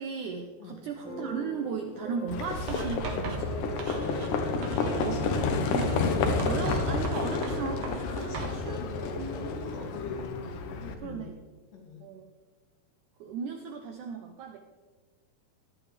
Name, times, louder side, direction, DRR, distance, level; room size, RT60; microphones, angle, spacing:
voice 1, 0.0-3.7 5.0-5.2 5.7-5.8 6.4-8.8 9.2-9.5 11.0-11.3 12.0-12.3 13.2-14.6, right 6 dB, 80° right, 4 dB, 1.8 m, -36 dB
sound 1, 1.0-10.2, equal, ahead, 2.3 m, -43 dB
Livestock farm animals working animals, 2.3-10.9, left 4 dB, 65° left, 2.4 m, -30 dB
Writing, 2.7-4.4 4.6-5.2 5.8-8.6, right 4 dB, 60° right, 2.8 m, -39 dB
voice 2, 4.5-5.8 6.5-6.9 8.2-8.5 9.5-10.2 11.0-11.3 11.7-12.0, left 3 dB, 80° left, 0 dB, 4.3 m, -45 dB
18.0 x 11.0 x 3.4 m, 1.3 s
omnidirectional pair, 4.6 m